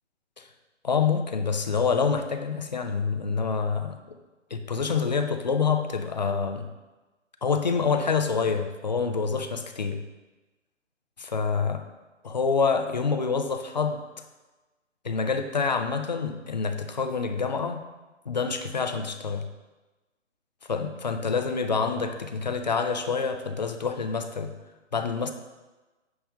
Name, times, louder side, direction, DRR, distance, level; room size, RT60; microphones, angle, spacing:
voice 1, 0.8-4.2 4.5-6.7 7.4-10.0 11.2-11.8 12.2-14.0 15.0-17.9 18.3-19.5 20.7-24.6 24.9-25.3, left 5 dB, 35° left, 7 dB, 0.5 m, -27 dB
9.4 x 3.4 x 5.3 m, 1.2 s
figure-of-eight pair, 140°, 37 cm